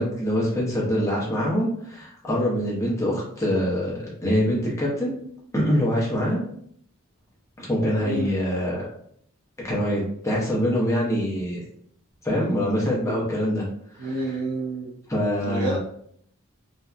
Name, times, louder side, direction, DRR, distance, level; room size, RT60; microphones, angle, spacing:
voice 1, 0.0-5.1 5.5-6.4 7.6-8.8 9.6-11.6 12.2-13.7 13.9-14.2 15.1-15.8, equal, 15° left, -5 dB, 0.7 m, -24 dB
voice 2, 14.0-14.9 15.4-15.8, right 2 dB, 90° right, -4 dB, 0.6 m, -28 dB
2.7 x 2.1 x 2.3 m, 0.66 s
head